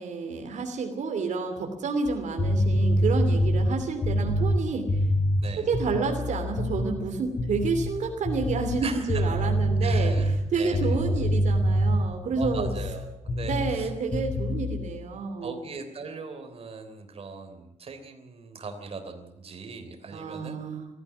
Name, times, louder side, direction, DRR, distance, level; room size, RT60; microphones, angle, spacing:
voice 1, 0.0-5.0 5.6-12.7 13.4-15.6 20.1-20.9, right 4 dB, 85° right, 4 dB, 2.9 m, -29 dB
sound 1, 2.1-7.0 7.3-8.0 8.2-12.9 13.3-13.8 14.1-14.8, equal, 40° left, 4.0 m, -25 dB
voice 2, 5.4-5.7 8.8-9.3 9.8-11.0 12.4-13.9 15.4-20.6, right 4 dB, 55° right, 6 dB, 3.4 m, -39 dB
20.0 x 14.0 x 9.8 m, 0.85 s
wide cardioid pair, 125°, 12 cm